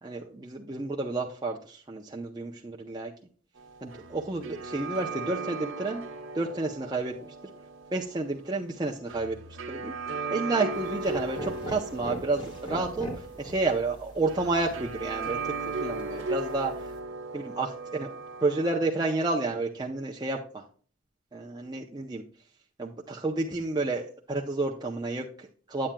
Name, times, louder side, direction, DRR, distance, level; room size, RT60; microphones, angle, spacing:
voice 1, 0.0-3.1 3.8-6.0 6.3-7.3 7.9-9.4 9.7-9.9 10.3-13.1 13.4-15.5 15.8-16.9 17.3-20.6 21.3-22.2 22.8-25.9, right 3 dB, 20° right, -1 dB, 0.6 m, -30 dB
sound 1, 3.6-18.8, right 3 dB, 90° right, 1.0 m, -37 dB
sound 2, 10.7-17.0, right 1 dB, 25° left, 1.9 m, -42 dB
8.8 x 8.6 x 2.2 m, 0.42 s
head